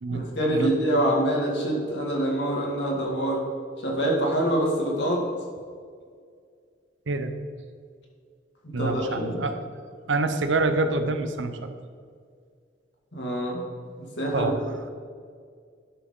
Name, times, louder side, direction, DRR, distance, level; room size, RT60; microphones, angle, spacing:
voice 1, 0.1-3.4 3.8-5.2 8.6-9.4 13.1-13.6 14.2-14.5, right 1 dB, 70° left, -2 dB, 2.2 m, -25 dB
voice 2, 8.7-9.6 10.1-11.7 14.3-14.9, right 3 dB, 85° right, 8 dB, 0.8 m, -26 dB
11.0 x 6.1 x 3.8 m, 2.1 s
head